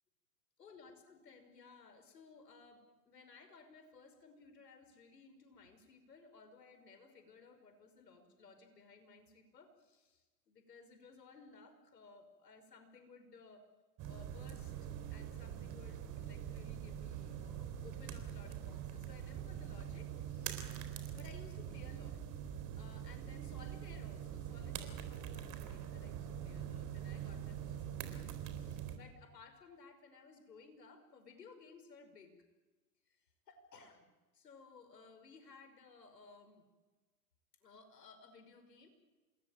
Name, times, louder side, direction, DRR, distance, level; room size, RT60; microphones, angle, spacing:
voice 1, 0.6-13.6 14.1-20.6 21.1-22.2 22.5-32.4 33.1-34.1 34.3-36.6 37.6-38.9, left 4 dB, 80° left, 8 dB, 5.5 m, -59 dB
sound 1, 14.0-29.0, right 9 dB, 40° right, 4.1 m, -44 dB
27.5 x 21.0 x 8.9 m, 1.2 s
hypercardioid pair, 105°, 48 cm